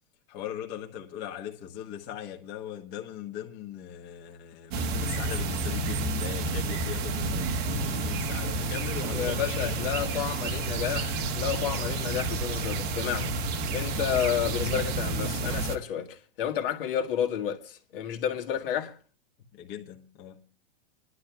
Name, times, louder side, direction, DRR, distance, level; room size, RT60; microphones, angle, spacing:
voice 1, 0.3-10.0 19.5-20.4, left 10 dB, 35° left, 1.4 m, -40 dB
sound 1, 4.7-15.8, right 2 dB, 30° right, 1.0 m, -30 dB
voice 2, 9.1-13.3 13.7-18.9, left 9 dB, 65° left, 1.8 m, -31 dB
29.0 x 11.5 x 2.3 m
supercardioid pair, 150°, 30 cm